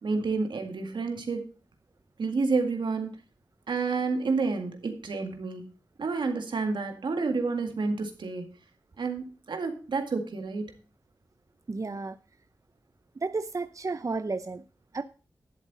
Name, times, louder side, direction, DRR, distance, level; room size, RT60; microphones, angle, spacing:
voice 1, 0.0-1.4 2.2-3.1 3.7-5.7 6.0-8.5 9.0-10.7, right 4 dB, 85° right, 2.0 m, -29 dB
voice 2, 11.7-12.2 13.2-14.6 14.9-15.0, right 3 dB, 45° right, 0.6 m, -32 dB
11.0 x 7.9 x 4.1 m
cardioid pair, 55°, 8 cm